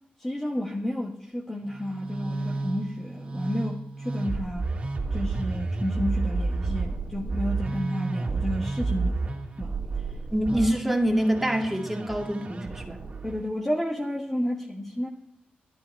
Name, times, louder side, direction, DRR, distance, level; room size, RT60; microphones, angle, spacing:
voice 1, 0.2-4.7 5.1-9.1 9.6-9.7 13.2-15.1, left 1 dB, 10° left, 1.3 m, -31 dB
Musical instrument, 1.6-13.4, right 3 dB, 40° right, 2.7 m, -31 dB
voice 2, 10.3-13.0, equal, 5° right, 2.1 m, -25 dB
12.5 x 12.0 x 4.6 m
wide cardioid pair, 125°, 3 cm